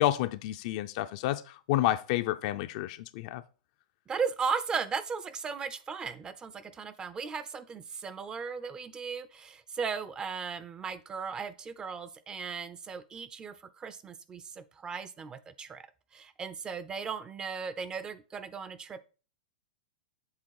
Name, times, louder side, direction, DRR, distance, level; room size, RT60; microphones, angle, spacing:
voice 1, 0.0-3.4, left 14 dB, 55° left, 0.5 m, -29 dB
voice 2, 4.1-15.9 16.1-19.0, right 5 dB, 20° right, 0.5 m, -36 dB
7.5 x 3.5 x 4.7 m
hypercardioid pair, 125°, 4 cm